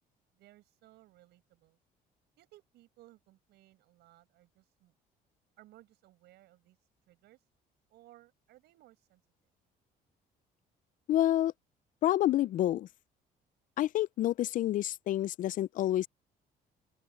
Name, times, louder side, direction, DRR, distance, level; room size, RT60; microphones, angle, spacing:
voice 1, 0.4-1.8 2.4-4.9 5.6-6.8 7.1-7.4 7.9-9.2, right 16 dB, 80° right, 6.8 m, -60 dB
voice 2, 11.1-11.5 12.0-12.9 13.8-16.1, left 13 dB, 50° left, 0.4 m, -28 dB
open air
cardioid pair, 110°, 17 cm